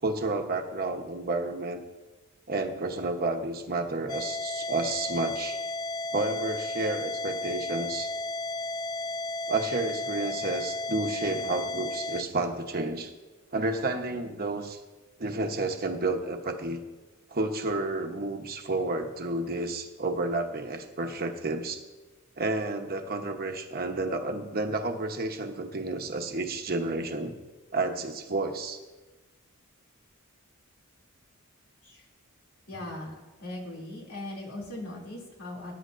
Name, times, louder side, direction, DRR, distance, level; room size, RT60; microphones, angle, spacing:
voice 1, 0.0-1.8 2.5-5.6 6.1-8.1 9.5-13.1 13.5-14.8 15.2-16.8 17.3-21.8 22.4-27.4 27.7-28.8, right 2 dB, 45° right, 4 dB, 1.0 m, -31 dB
sound 1, 4.1-12.2, left 2 dB, 20° left, 0.3 m, -33 dB
voice 2, 32.7-33.1 33.4-35.8, left 1 dB, 85° left, -2 dB, 2.9 m, -39 dB
19.0 x 9.4 x 2.6 m, 1.2 s
head